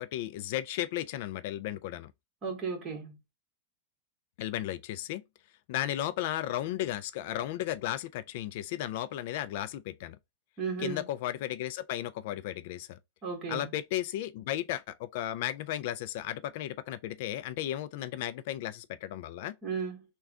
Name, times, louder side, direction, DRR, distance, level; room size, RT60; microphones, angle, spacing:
voice 1, 0.0-2.1 4.4-5.2 5.7-10.2 10.8-13.0 13.5-19.5, left 13 dB, 55° left, 0.3 m, -34 dB
voice 2, 2.4-3.2 10.6-11.1 13.2-13.6 19.6-20.0, right 5 dB, 25° right, 1.4 m, -35 dB
3.6 x 2.2 x 3.5 m
supercardioid pair, 155°, 0 cm